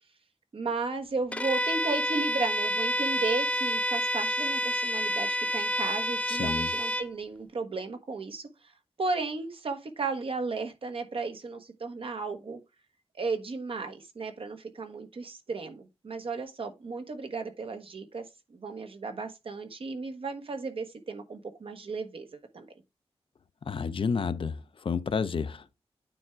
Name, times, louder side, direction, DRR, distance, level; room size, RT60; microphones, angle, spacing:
voice 1, 0.5-8.5 9.0-12.6 13.1-18.2 18.5-22.7, right 4 dB, 60° right, 1.2 m, -34 dB
Bowed string instrument, 1.3-7.1, equal, 10° left, 0.4 m, -29 dB
voice 2, 6.3-6.7 23.7-25.6, left 5 dB, 55° left, 0.6 m, -30 dB
9.1 x 3.6 x 4.5 m
wide cardioid pair, 115°, 11 cm